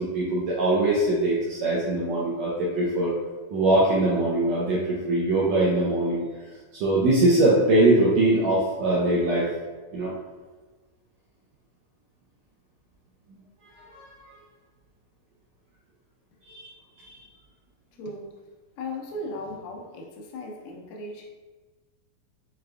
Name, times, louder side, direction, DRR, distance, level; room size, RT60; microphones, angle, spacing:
voice 1, 0.0-3.1 3.5-6.2 6.7-9.5 9.9-10.1 13.3-13.4 13.8-14.0 16.5-16.7 17.0-17.2, right 2 dB, 80° right, -6 dB, 1.6 m, -22 dB
voice 2, 18.0-18.4 18.8-21.3, left 1 dB, 85° left, 0 dB, 2.3 m, -37 dB
6.4 x 2.5 x 2.2 m, 1.3 s
omnidirectional pair, 3.8 m